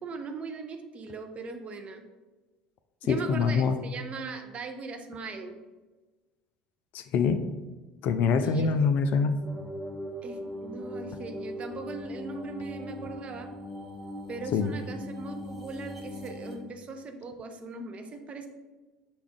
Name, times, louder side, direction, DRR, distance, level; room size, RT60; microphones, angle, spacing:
voice 1, 0.0-2.0 3.0-5.6 8.4-8.8 10.2-13.5 14.3-18.5, right 3 dB, 35° right, 5 dB, 0.6 m, -39 dB
voice 2, 3.1-3.8 6.9-7.4 8.0-9.4 14.5-14.7, left 5 dB, 50° left, 9 dB, 0.3 m, -24 dB
sound 1, 9.4-16.6, left 1 dB, 5° right, 1.2 m, -40 dB
6.1 x 2.3 x 3.6 m, 1.2 s
figure-of-eight pair, 65°, 4 cm